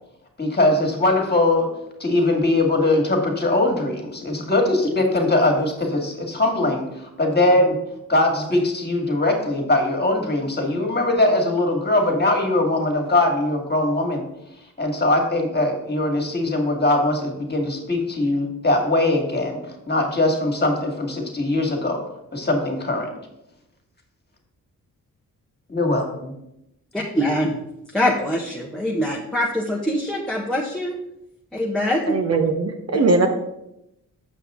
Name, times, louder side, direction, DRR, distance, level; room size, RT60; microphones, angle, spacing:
voice 1, 0.4-1.7 2.0-6.9 7.2-7.8 8.1-14.2 14.8-22.0 22.3-23.1 25.7-26.0, left 2 dB, 25° left, 2 dB, 2.0 m, -21 dB
voice 2, 26.9-27.6 27.9-31.0 31.5-32.2, equal, ahead, -2 dB, 1.1 m, -23 dB
voice 3, 32.1-33.3, right 3 dB, 40° right, 4 dB, 1.0 m, -20 dB
7.3 x 5.5 x 3.7 m, 0.84 s
supercardioid pair, 50°, 37 cm